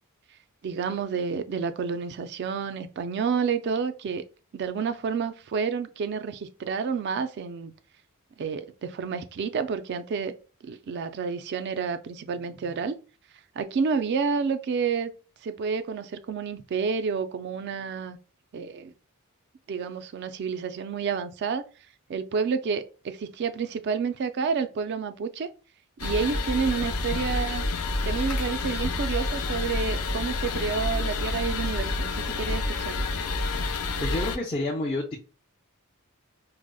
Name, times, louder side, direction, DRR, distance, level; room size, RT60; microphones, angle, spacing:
voice 1, 0.6-4.2 4.5-7.7 8.4-10.4 10.6-13.0 13.6-15.1 15.4-18.2 18.5-18.9 19.7-21.6 22.1-25.5 26.0-27.6 28.0-33.1, right 5 dB, 50° right, 0.3 m, -29 dB
sound 1, 26.0-34.4, left 3 dB, 80° left, 0.5 m, -29 dB
voice 2, 34.0-35.2, left 2 dB, 25° left, 0.4 m, -29 dB
4.8 x 2.0 x 2.2 m
head